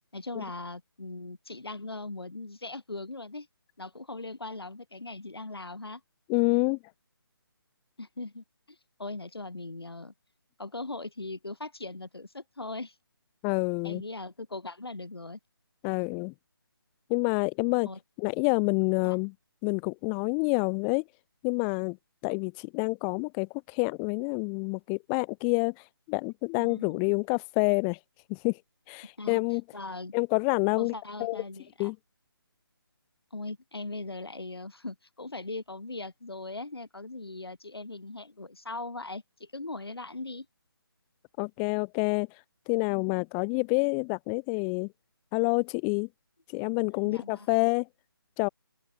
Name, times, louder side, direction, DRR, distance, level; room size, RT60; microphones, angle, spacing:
voice 1, 0.1-3.5 3.8-6.0 8.0-10.1 10.6-12.9 13.8-15.4 17.8-18.0 19.0-19.1 26.6-27.1 29.2-29.4 29.7-30.1 30.8-31.9 33.3-40.5 47.0-47.7, left 2 dB, 80° left, 6.4 m, -40 dB
voice 2, 6.3-6.8 13.4-14.0 15.8-16.3 17.1-17.9 18.2-19.3 19.6-21.0 21.4-22.0 22.2-25.7 26.1-28.0 28.3-28.6 28.9-29.6 30.1-30.9 31.2-31.4 31.8-32.0 41.4-42.3 42.7-44.9 45.3-46.1 46.5-47.9 48.4-48.5, left 40 dB or more, 5° left, 0.3 m, -27 dB
open air
figure-of-eight pair, 160°, 13 cm